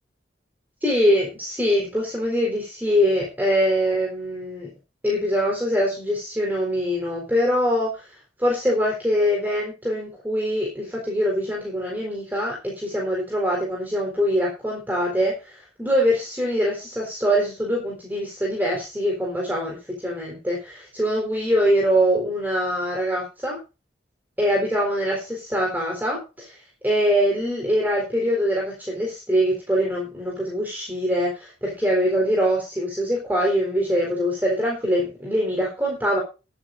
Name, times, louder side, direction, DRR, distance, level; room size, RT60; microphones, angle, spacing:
voice 1, 0.8-4.7 5.0-8.1 8.4-23.6 24.4-26.6 26.8-36.2, equal, 10° right, -2 dB, 4.1 m, -23 dB
21.5 x 8.7 x 2.6 m, 0.30 s
head